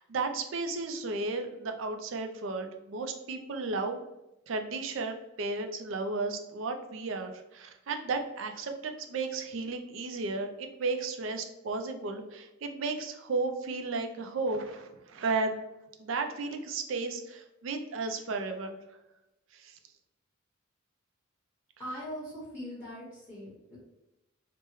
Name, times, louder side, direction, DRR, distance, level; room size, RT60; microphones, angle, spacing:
voice 1, 0.0-4.0 4.5-15.6 16.0-18.8 19.5-19.8, right 3 dB, 70° right, 6 dB, 0.4 m, -34 dB
voice 2, 21.8-23.8, equal, 10° left, -10 dB, 0.9 m, -41 dB
3.4 x 2.1 x 3.0 m, 0.93 s
head